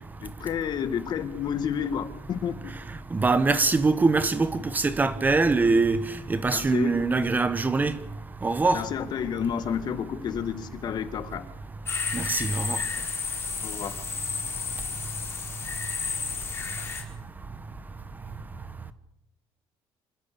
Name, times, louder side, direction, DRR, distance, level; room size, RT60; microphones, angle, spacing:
voice 1, 0.2-2.6 6.5-6.9 8.7-11.5 13.6-14.0, left 8 dB, 50° left, 1.9 m, -30 dB
voice 2, 3.1-6.0 6.3-8.0 8.4-8.8 12.1-12.8, right 3 dB, 20° right, 1.2 m, -23 dB
sound 1, 11.9-17.0, left 5 dB, 25° left, 4.8 m, -32 dB
27.0 x 16.0 x 6.9 m
cardioid pair, 150°, 9 cm